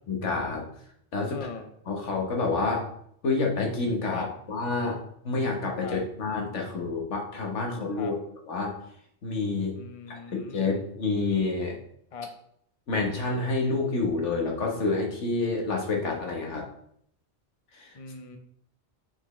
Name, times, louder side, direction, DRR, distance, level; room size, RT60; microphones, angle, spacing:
voice 1, 0.1-0.6 1.1-1.4 1.9-2.9 3.2-5.0 5.2-8.2 8.5-8.7 9.2-9.7 10.1-11.8 12.9-16.7 17.7-17.9, left 3 dB, 90° left, 1 dB, 1.6 m, -28 dB
voice 2, 1.3-1.7 4.1-4.3 5.8-6.0 8.0-8.1 9.8-10.8 12.1-12.3 17.9-18.4, left 5 dB, 35° left, 5 dB, 0.7 m, -40 dB
6.2 x 6.0 x 3.2 m, 0.68 s
omnidirectional pair, 1.2 m